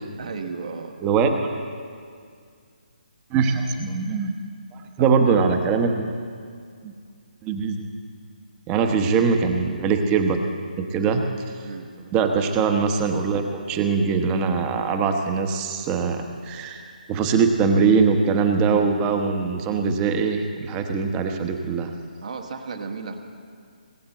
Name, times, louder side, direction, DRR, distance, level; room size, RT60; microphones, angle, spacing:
voice 1, 0.2-1.0 5.0-5.1 8.8-9.0 11.6-11.9 22.2-23.2, right 4 dB, 50° right, 4 dB, 1.5 m, -34 dB
voice 2, 1.0-1.5 3.3-4.3 4.7-6.1 6.8-6.9 7.4-7.9 8.7-10.4 10.9-11.2 12.1-16.8 17.1-21.9, right 5 dB, 20° right, 5 dB, 1.1 m, -22 dB
20.0 x 7.9 x 7.9 m, 2.2 s
figure-of-eight pair, 145°, 5 cm